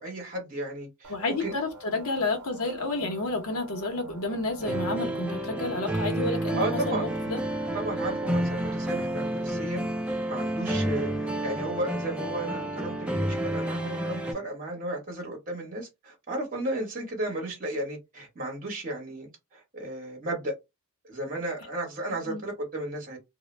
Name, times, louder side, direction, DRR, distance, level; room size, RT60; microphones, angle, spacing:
voice 1, 0.0-1.1 1.4-1.6 6.5-7.1 7.7-20.5 21.1-23.2, right 1 dB, 40° right, 1.0 m, -34 dB
sound 1, 1.0-9.5, right 2 dB, 90° right, 0.6 m, -46 dB
voice 2, 1.1-7.4 22.3-22.4, left 2 dB, 70° left, 0.8 m, -30 dB
sound 2, 4.6-14.3, right 1 dB, 5° right, 0.4 m, -30 dB
2.2 x 2.0 x 3.2 m
head